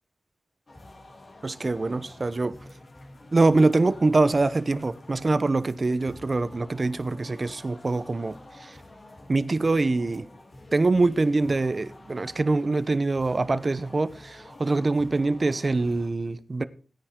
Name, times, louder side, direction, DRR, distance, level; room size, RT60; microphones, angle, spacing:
sound 1, 0.7-16.1, left 1 dB, 45° left, 3.0 m, -49 dB
voice 1, 1.4-2.5 3.3-8.8 9.3-10.3 10.7-16.6, right 3 dB, 40° right, 0.9 m, -24 dB
16.5 x 10.0 x 3.8 m
cardioid pair, 65°, 0 cm